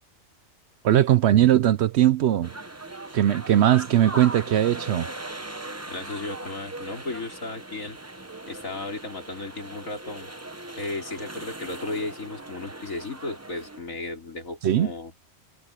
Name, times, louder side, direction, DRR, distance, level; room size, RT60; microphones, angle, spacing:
voice 1, 0.8-2.5 3.1-5.1 14.6-14.9, right 12 dB, 65° right, 0.7 m, -19 dB
sound 1, 2.4-13.8, right 2 dB, 15° right, 1.0 m, -39 dB
voice 2, 5.9-8.0 8.5-10.3 10.8-15.1, left 2 dB, 80° left, 4.3 m, -35 dB
omnidirectional pair, 1.4 m